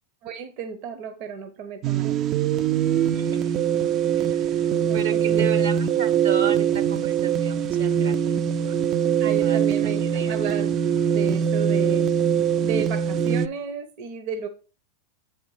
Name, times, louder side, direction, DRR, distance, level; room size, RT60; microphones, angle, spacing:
voice 1, 0.2-2.3 4.8-5.5 6.0-6.1 9.2-10.8 11.1-12.1 12.6-14.5, right 6 dB, 55° right, 8 dB, 0.8 m, -33 dB
sound 1, 1.8-13.5, right 8 dB, 40° right, 0.4 m, -22 dB
voice 2, 3.1-3.5 4.2-8.8 9.4-10.4, right 7 dB, 80° right, 10 dB, 1.3 m, -35 dB
7.7 x 4.4 x 4.8 m, 0.37 s
hypercardioid pair, 105°, 0 cm